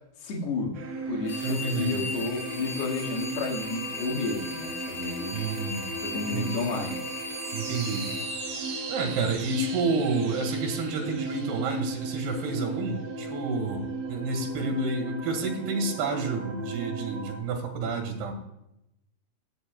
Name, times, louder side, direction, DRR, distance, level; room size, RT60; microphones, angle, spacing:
voice 1, 0.2-0.8 1.1-5.5 6.0-7.0, left 4 dB, 75° left, -1 dB, 3.9 m, -31 dB
sound 1, 0.7-17.4, right 4 dB, 60° right, 2.3 m, -37 dB
sound 2, 1.2-9.4, left 2 dB, 40° left, 1.0 m, -38 dB
voice 2, 1.4-2.1 5.3-5.9 6.3-6.6 7.5-8.1 8.9-18.3, right 3 dB, 75° right, 3 dB, 3.7 m, -29 dB
17.0 x 8.1 x 2.3 m, 0.84 s
omnidirectional pair, 4.7 m